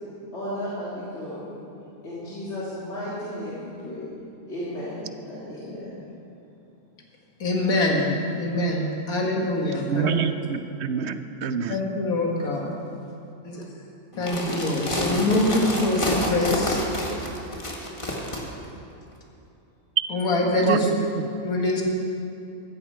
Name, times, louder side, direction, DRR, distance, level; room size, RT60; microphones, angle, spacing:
voice 1, 0.0-1.6 2.0-4.1 4.5-6.0, equal, 55° left, -10 dB, 3.3 m, -34 dB
voice 2, 7.4-10.1 11.7-12.7 13.5-13.6 14.2-16.8 20.1-20.9 21.4-21.8, left 2 dB, 90° left, -1 dB, 2.4 m, -24 dB
voice 3, 9.8-11.8 20.6-21.3, right 7 dB, 60° right, 10 dB, 0.8 m, -27 dB
sound 1, 14.1-18.4, left 1 dB, 20° left, 1.8 m, -28 dB
15.0 x 14.5 x 4.6 m, 2.7 s
omnidirectional pair, 1.5 m